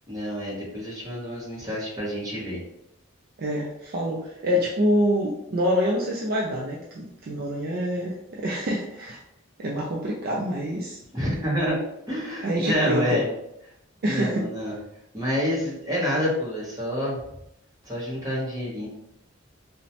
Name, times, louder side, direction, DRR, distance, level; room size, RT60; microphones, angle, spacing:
voice 1, 0.1-2.6 11.1-11.8 12.1-13.3 14.1-14.7 15.1-17.2 17.8-18.9, equal, 20° right, -6 dB, 0.8 m, -28 dB
voice 2, 3.4-9.2 9.6-11.0 12.4-13.2 14.0-14.5, equal, 45° right, -2 dB, 0.4 m, -26 dB
3.0 x 2.1 x 2.7 m, 0.81 s
head